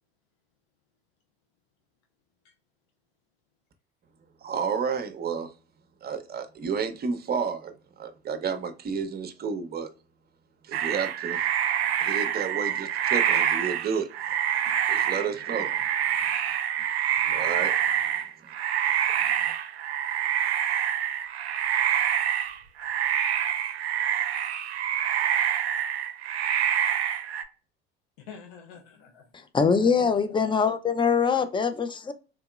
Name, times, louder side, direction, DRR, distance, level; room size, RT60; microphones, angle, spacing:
voice 1, 4.4-5.5 6.0-9.9 10.7-11.4 12.0-14.1 14.7-15.7 17.3-17.8, right 6 dB, 30° right, 0.8 m, -31 dB
sound 1, 10.7-27.4, right 9 dB, 85° right, 0.5 m, -26 dB
voice 2, 15.3-15.9 17.2-17.6 28.2-29.3, left 7 dB, 65° left, 1.0 m, -47 dB
voice 3, 29.3-32.1, left 6 dB, 15° left, 0.5 m, -23 dB
3.9 x 2.8 x 2.3 m
hypercardioid pair, 75°, 31 cm